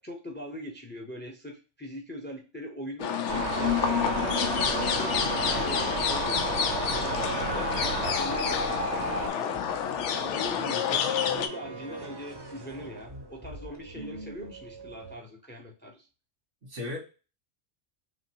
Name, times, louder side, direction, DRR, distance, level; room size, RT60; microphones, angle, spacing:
voice 1, 0.0-9.8 10.1-16.1, equal, 10° left, 2 dB, 0.7 m, -42 dB
sound 1, 3.0-11.5, left 8 dB, 75° left, 0.9 m, -29 dB
sound 2, 3.3-9.3, right 3 dB, 65° right, 1.1 m, -32 dB
sound 3, 9.5-15.2, right 2 dB, 25° right, 0.7 m, -44 dB
voice 2, 14.0-14.5 16.6-17.0, left 2 dB, 85° right, 0 dB, 2.1 m, -38 dB
5.9 x 2.4 x 2.8 m, 0.32 s
omnidirectional pair, 1.3 m